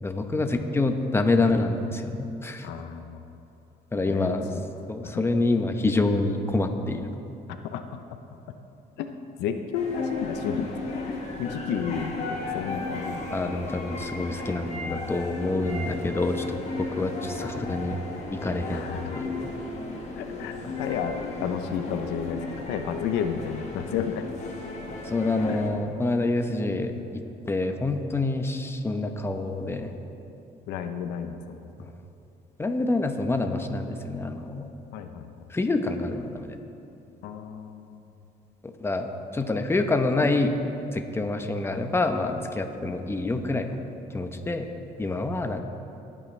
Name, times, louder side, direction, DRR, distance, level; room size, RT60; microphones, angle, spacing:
voice 1, 0.0-2.7 3.9-4.5 4.9-7.1 13.3-18.0 18.3-19.5 25.0-27.0 27.5-29.9 32.6-34.7 35.5-36.6 38.6-39.1 39.3-40.5 40.9-43.8 44.1-44.7 45.0-45.6, left 2 dB, 15° left, 5 dB, 0.9 m, -27 dB
voice 2, 2.6-3.2 4.0-4.7 5.0-5.2 7.5-7.8 9.0-9.1 9.4-10.7 11.1-13.5 18.7-19.2 20.2-24.2 25.5-25.6 30.7-31.4 34.9-35.3 37.2-38.0, left 7 dB, 90° left, 7 dB, 0.8 m, -32 dB
sound 1, 9.7-25.7, left 3 dB, 40° left, 1.8 m, -34 dB
19.5 x 8.7 x 3.3 m, 2.8 s
cardioid pair, 110°, 17 cm